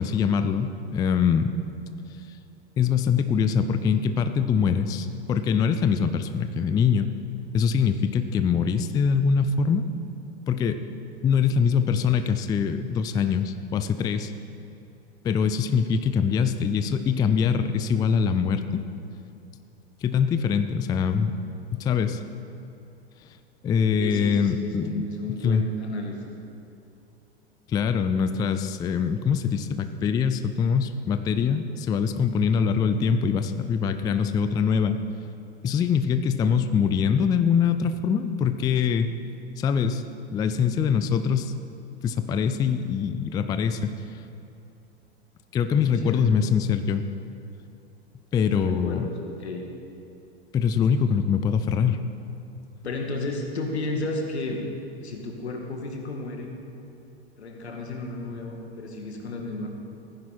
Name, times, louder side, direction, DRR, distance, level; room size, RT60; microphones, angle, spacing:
voice 1, 0.0-1.5 2.8-7.1 7.5-9.8 10.5-10.8 11.2-14.3 15.2-18.8 20.0-21.3 21.7-22.2 23.6-25.1 25.4-25.6 27.7-35.0 35.6-39.1 39.6-40.0 40.3-41.5 42.0-43.9 45.5-47.0 48.3-49.1 50.5-52.0, left 6 dB, 15° left, 10 dB, 0.3 m, -23 dB
voice 2, 24.0-26.2 45.8-46.4 48.4-49.6 52.8-54.6 55.0-56.5 57.4-59.7, left 2 dB, 80° left, 1 dB, 2.0 m, -33 dB
15.0 x 9.9 x 4.4 m, 2.8 s
hypercardioid pair, 100°, 32 cm